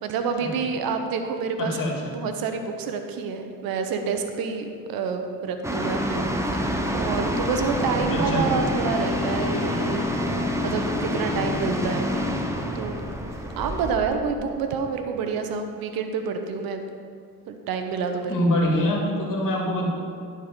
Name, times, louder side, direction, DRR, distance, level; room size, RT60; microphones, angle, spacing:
voice 1, 0.0-1.8 2.0-6.2 6.5-10.1 10.6-12.1 12.7-13.0 13.6-16.8 17.5-18.5, right 5 dB, 75° right, 6 dB, 0.9 m, -28 dB
voice 2, 1.6-1.9 8.1-8.4 18.3-19.9, left 1 dB, 65° left, -1 dB, 2.2 m, -24 dB
sound 1, 5.6-14.0, equal, 10° right, 1.0 m, -27 dB
sound 2, 7.6-14.0, left 3 dB, 50° left, 0.8 m, -37 dB
11.5 x 4.4 x 5.1 m, 2.3 s
supercardioid pair, 60°, 35 cm